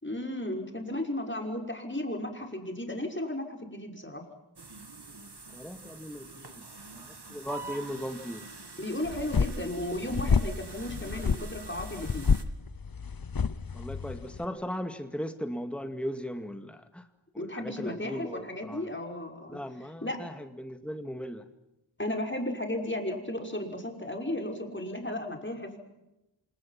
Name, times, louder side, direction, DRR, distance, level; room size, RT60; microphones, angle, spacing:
voice 1, 0.0-4.3 8.8-12.3 17.4-19.6 20.0-20.2 22.0-25.8, left 1 dB, 25° left, 4 dB, 6.0 m, -34 dB
sound 1, 4.6-12.4, right 3 dB, 55° right, 2.8 m, -46 dB
voice 2, 5.5-6.7 6.9-8.4 13.7-17.1 17.4-18.9 19.5-21.4, equal, ahead, 7 dB, 2.1 m, -38 dB
sound 2, 9.1-14.5, left 5 dB, 45° left, 0.9 m, -29 dB
29.5 x 27.0 x 5.9 m, 0.93 s
wide cardioid pair, 50°, 47 cm